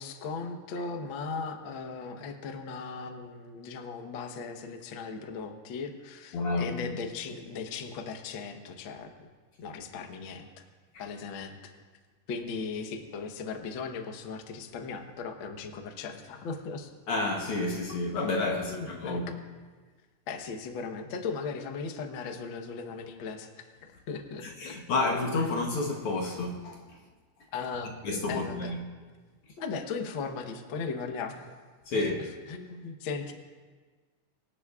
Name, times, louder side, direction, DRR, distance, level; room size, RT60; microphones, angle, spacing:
voice 1, 0.0-9.3 9.6-10.6 11.0-11.6 12.3-16.9 18.5-19.3 20.3-24.8 27.5-27.9 28.3-28.7 29.6-31.6 31.9-33.3, left 5 dB, 85° left, 1.1 m, -38 dB
voice 2, 6.3-6.9 17.1-19.3 24.4-26.8 28.0-28.8 31.9-32.2, left 2 dB, 65° left, 1.5 m, -30 dB
24.5 x 10.0 x 2.4 m
omnidirectional pair, 3.8 m